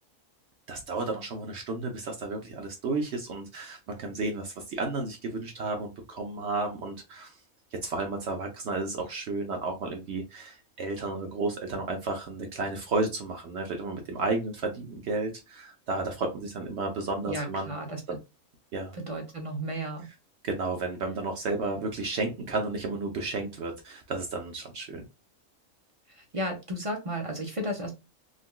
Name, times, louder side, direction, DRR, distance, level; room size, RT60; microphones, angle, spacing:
voice 1, 0.7-7.3 7.8-17.7 18.1-18.2 18.7-18.9 20.4-25.0, right 3 dB, 65° right, 3 dB, 0.8 m, -32 dB
voice 2, 17.3-18.0 18.9-20.1 26.1-28.0, right 1 dB, 40° right, 1 dB, 0.5 m, -34 dB
3.7 x 2.2 x 2.2 m, 0.26 s
omnidirectional pair, 1.4 m